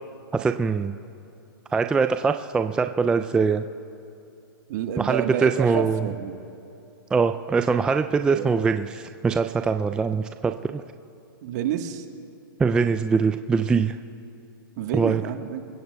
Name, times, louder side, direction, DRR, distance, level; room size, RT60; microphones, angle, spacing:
voice 1, 0.3-0.9 1.7-3.6 5.0-6.1 7.1-10.8 12.6-14.0 14.9-15.2, right 5 dB, 5° right, 7 dB, 0.3 m, -23 dB
voice 2, 4.7-6.4 8.3-8.5 11.4-12.1 14.8-15.6, right 9 dB, 50° right, 6 dB, 1.3 m, -29 dB
27.5 x 15.5 x 2.3 m, 2.7 s
hypercardioid pair, 130°, 12 cm